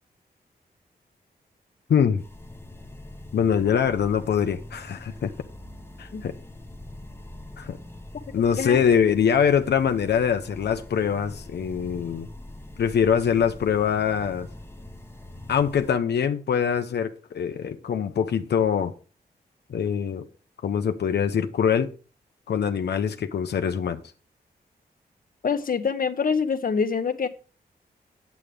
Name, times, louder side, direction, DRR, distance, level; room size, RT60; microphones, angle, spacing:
voice 1, 1.9-2.2 3.3-5.3 6.0-6.3 7.6-7.8 8.3-12.3 12.8-14.5 15.5-18.9 19.7-20.3 20.6-21.9 22.5-24.0, left 7 dB, 90° left, 0.9 m, -23 dB
sound 1, 2.2-15.9, left 1 dB, 15° left, 1.1 m, -43 dB
voice 2, 25.4-27.3, left 6 dB, 55° left, 1.3 m, -25 dB
9.2 x 8.4 x 5.0 m
wide cardioid pair, 110°, 17 cm